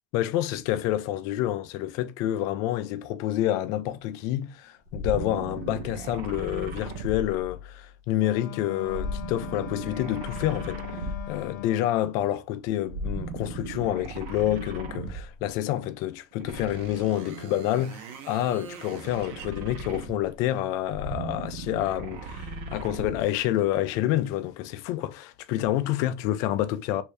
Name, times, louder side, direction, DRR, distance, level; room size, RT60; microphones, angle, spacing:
voice 1, 0.1-27.0, left 13 dB, 40° left, 0.3 m, -28 dB
sound 1, 4.9-7.9 8.8-11.5 12.8-15.4 16.4-20.4 20.8-23.3, right 2 dB, 55° right, 0.8 m, -37 dB
Wind instrument woodwind instrument, 8.2-12.0, left 10 dB, 75° left, 0.7 m, -40 dB
3.3 x 2.6 x 3.2 m
supercardioid pair, 180°, 9 cm